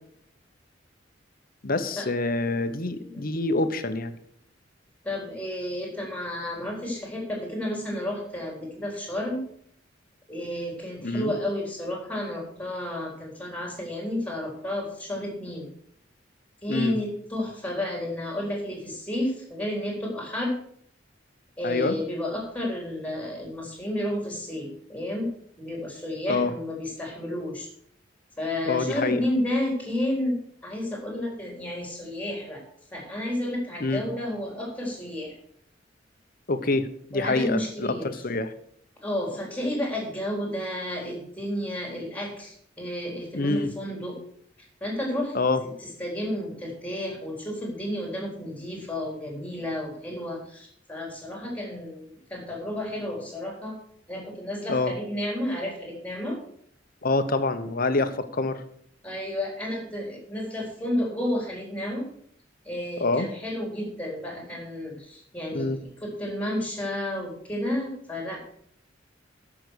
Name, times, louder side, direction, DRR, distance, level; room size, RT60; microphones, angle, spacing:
voice 1, 1.6-4.1 11.0-11.3 16.7-17.0 21.6-21.9 26.3-26.5 28.6-29.2 33.8-34.0 36.5-38.5 43.3-43.7 45.3-45.6 54.7-54.9 57.0-58.6 63.0-63.3 65.5-65.8, left 2 dB, 50° left, 10 dB, 1.0 m, -26 dB
voice 2, 5.0-9.4 10.3-15.7 16.6-20.5 21.6-25.3 25.6-27.7 28.4-32.6 32.9-35.4 37.1-38.2 39.0-44.2 44.8-53.7 54.1-56.4 59.0-62.1 62.7-68.4, left 1 dB, 10° left, 0 dB, 3.7 m, -31 dB
13.5 x 6.2 x 6.3 m, 0.65 s
head